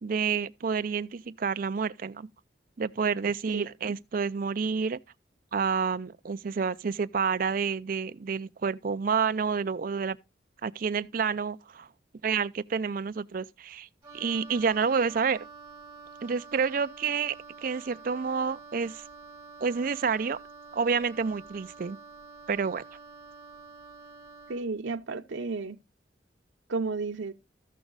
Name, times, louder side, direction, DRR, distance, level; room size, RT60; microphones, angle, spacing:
voice 1, 0.0-2.3 2.8-5.0 5.5-10.2 10.6-11.9 12.2-13.9 14.1-15.5 16.2-19.0 19.6-20.4 20.7-22.0 22.5-22.8, right 5 dB, 50° right, 0.4 m, -29 dB
voice 2, 3.5-4.0 24.5-25.8 26.7-27.3, right 3 dB, 90° right, 0.7 m, -33 dB
Wind instrument woodwind instrument, 14.0-24.7, right 4 dB, 15° right, 1.8 m, -48 dB
13.5 x 6.1 x 3.9 m
head